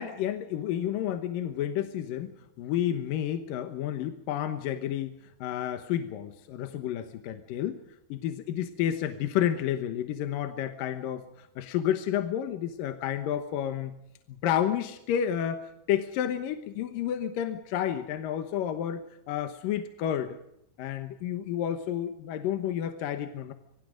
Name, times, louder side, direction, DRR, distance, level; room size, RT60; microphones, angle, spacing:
voice 1, 0.0-2.3 2.6-5.1 5.4-7.8 8.1-14.0 14.3-20.4 20.8-23.5, left 10 dB, 70° left, 8 dB, 2.7 m, -30 dB
27.0 x 23.5 x 5.2 m, 0.78 s
omnidirectional pair, 4.4 m